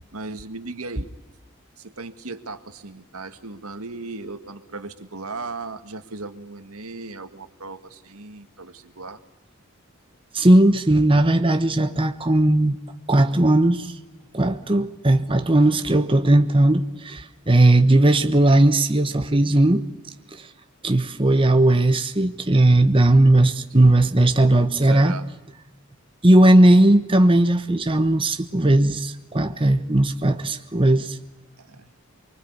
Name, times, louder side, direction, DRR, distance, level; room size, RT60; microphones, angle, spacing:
voice 1, 0.1-1.1 1.8-9.2 23.7-24.0 24.8-25.3 31.6-31.9, right 3 dB, 80° right, 1.9 m, -37 dB
voice 2, 10.3-12.8 13.1-13.9 14.3-19.8 20.3-20.5 20.8-25.1 26.2-31.2, right 1 dB, 25° right, 1.1 m, -17 dB
24.5 x 24.0 x 9.6 m
head